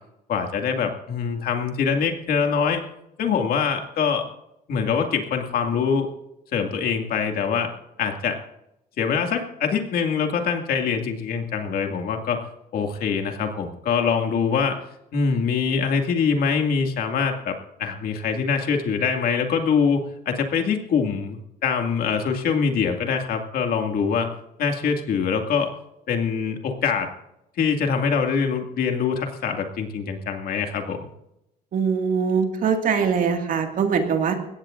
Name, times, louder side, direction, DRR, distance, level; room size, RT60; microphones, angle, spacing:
voice 1, 0.3-2.8 3.2-4.3 4.7-6.1 6.5-7.7 8.0-8.4 9.0-12.4 12.7-14.8 15.1-24.3 24.6-25.7 26.1-27.1 27.6-31.1, left 6 dB, 60° left, 4 dB, 2.3 m, -24 dB
voice 2, 31.7-34.4, right 6 dB, 55° right, 4 dB, 2.1 m, -22 dB
21.0 x 17.0 x 2.6 m, 0.86 s
cardioid pair, 110°, 17 cm